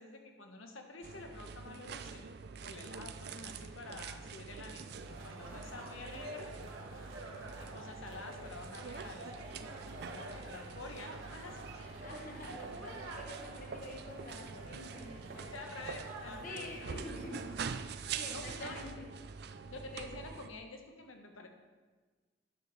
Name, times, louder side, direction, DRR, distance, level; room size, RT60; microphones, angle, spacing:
voice 1, 0.0-2.3 2.6-6.5 7.5-9.5 10.0-12.0 15.4-17.2 18.3-18.8 19.7-21.5, left 3 dB, 85° left, 4 dB, 1.1 m, -49 dB
sound 1, 1.0-20.5, right 5 dB, 55° right, 0.4 m, -45 dB
sound 2, 4.9-17.6, right 1 dB, 85° right, 1.4 m, -49 dB
voice 2, 12.0-15.5 16.2-17.5 18.1-19.1, left 1 dB, 40° left, 2 dB, 1.1 m, -47 dB
10.0 x 6.8 x 4.1 m, 1.4 s
head